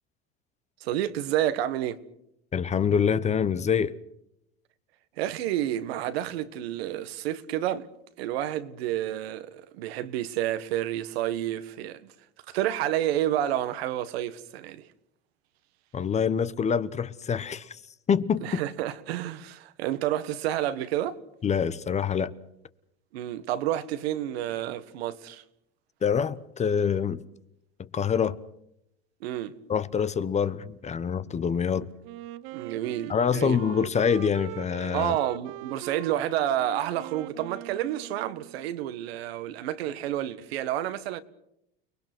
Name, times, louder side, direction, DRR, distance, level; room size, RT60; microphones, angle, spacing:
voice 1, 0.8-2.0 5.2-7.9 8.2-12.1 12.5-14.9 18.4-21.2 23.1-25.4 29.2-29.6 32.5-33.6 34.9-41.2, right 12 dB, 85° right, 1.7 m, -30 dB
voice 2, 2.5-3.9 15.9-17.8 18.1-18.6 21.4-22.3 26.0-27.2 27.8-28.4 29.7-31.9 33.1-35.2, left 7 dB, 20° left, 1.0 m, -26 dB
Wind instrument woodwind instrument, 32.0-38.7, right 16 dB, 65° right, 0.8 m, -42 dB
30.0 x 20.0 x 6.2 m
supercardioid pair, 125°, 30 cm